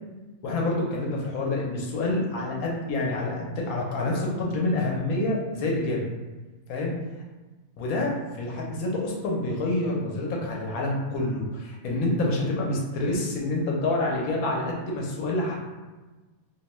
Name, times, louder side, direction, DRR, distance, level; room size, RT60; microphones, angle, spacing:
voice 1, 0.4-6.1 6.7-6.9 7.8-15.6, left 2 dB, 75° left, -2 dB, 1.1 m, -27 dB
2.7 x 2.2 x 3.0 m, 1.2 s
omnidirectional pair, 1.5 m